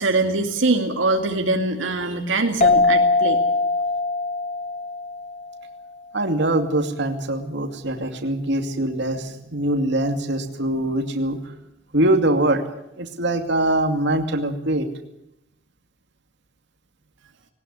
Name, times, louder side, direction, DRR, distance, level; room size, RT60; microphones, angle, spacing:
voice 1, 0.0-3.4, right 2 dB, 80° right, 4 dB, 2.3 m, -22 dB
sound 1, 2.6-5.9, left 3 dB, 35° left, 1.1 m, -21 dB
voice 2, 6.1-11.5 11.9-12.6 13.0-14.9, right 1 dB, 65° right, 5 dB, 2.5 m, -23 dB
20.0 x 19.0 x 9.7 m, 0.85 s
head